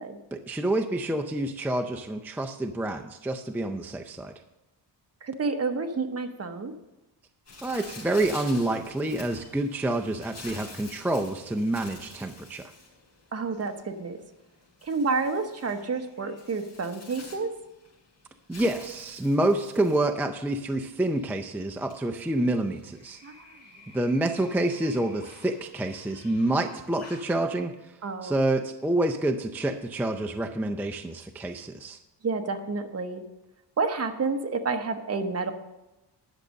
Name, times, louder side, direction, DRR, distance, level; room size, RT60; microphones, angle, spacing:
voice 1, 0.3-4.3 7.6-12.7 18.5-23.2 23.9-27.9 28.2-32.0, right 1 dB, 5° right, 4 dB, 0.4 m, -28 dB
voice 2, 5.2-6.7 13.3-14.2 14.8-17.5 23.2-23.6 28.0-28.4 32.2-33.2 33.8-35.5, right 4 dB, 35° right, 6 dB, 1.1 m, -29 dB
Bird, 7.4-27.3, left 3 dB, 35° left, 4.3 m, -49 dB
11.0 x 6.6 x 6.4 m, 1.0 s
wide cardioid pair, 135°, 41 cm